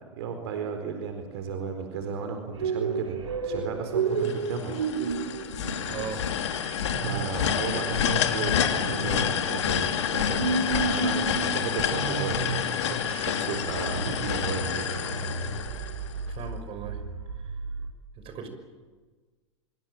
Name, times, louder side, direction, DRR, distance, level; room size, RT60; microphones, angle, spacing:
voice 1, 0.0-4.7 7.0-14.9, right 6 dB, 60° right, 6 dB, 4.3 m, -34 dB
sound 1, 2.5-17.9, right 4 dB, 75° right, 3.4 m, -33 dB
sound 2, 4.2-16.3, left 9 dB, 70° left, 2.4 m, -29 dB
voice 2, 5.9-6.3 16.3-17.0 17.4-17.5 18.2-18.5, right 6 dB, 35° right, 8 dB, 6.0 m, -37 dB
25.5 x 24.5 x 9.0 m, 1.4 s
hypercardioid pair, 95°, 15 cm